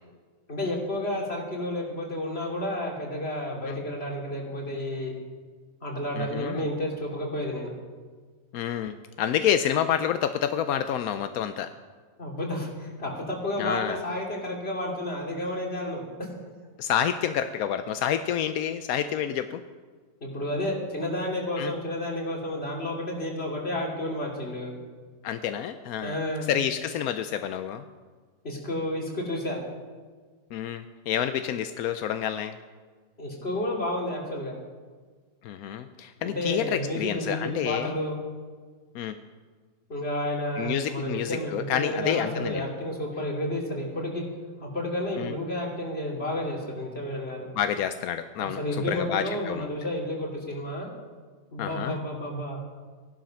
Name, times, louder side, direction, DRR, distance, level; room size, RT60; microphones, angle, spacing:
voice 1, 0.5-5.2 5.8-7.7 12.2-16.1 20.2-24.7 26.0-26.5 28.4-29.6 33.2-34.5 36.2-38.2 39.9-44.2 44.6-47.5 48.4-50.9 51.5-52.6, left 1 dB, 45° left, -2 dB, 3.1 m, -31 dB
voice 2, 6.1-6.6 8.5-11.7 13.6-14.0 16.8-19.6 21.6-21.7 25.2-26.2 26.5-27.8 30.5-32.5 35.4-37.9 38.9-39.2 40.6-42.7 45.2-45.3 47.6-49.7 51.6-52.0, left 9 dB, 85° left, 9 dB, 1.1 m, -28 dB
16.0 x 11.5 x 5.9 m, 1.5 s
omnidirectional pair, 1.5 m